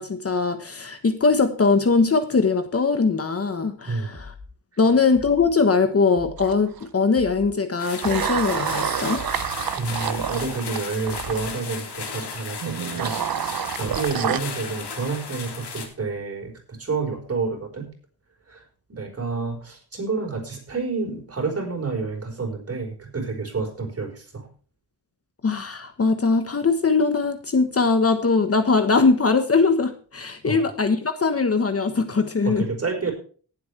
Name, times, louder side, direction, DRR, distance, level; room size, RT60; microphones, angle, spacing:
voice 1, 0.0-4.3 4.8-9.2 25.4-32.6, left 4 dB, 35° left, 9 dB, 1.2 m, -21 dB
sound 1, 4.1-4.5 5.1-5.5 6.1-6.5 7.1-7.5 8.1-8.5 9.1-9.5 10.1-10.5 11.1-11.5, left 3 dB, 5° left, 2.8 m, -42 dB
sound 2, 6.4-6.8 8.0-11.4 12.6-14.4, right 9 dB, 60° right, 0.8 m, -28 dB
sound 3, 7.8-15.9, left 5 dB, 85° left, 3.0 m, -35 dB
voice 2, 9.8-17.9 18.5-18.6 18.9-24.5 30.4-30.6 32.4-33.1, right 4 dB, 35° right, 2 dB, 4.7 m, -29 dB
18.5 x 7.9 x 3.3 m, 0.41 s
wide cardioid pair, 140°, 39 cm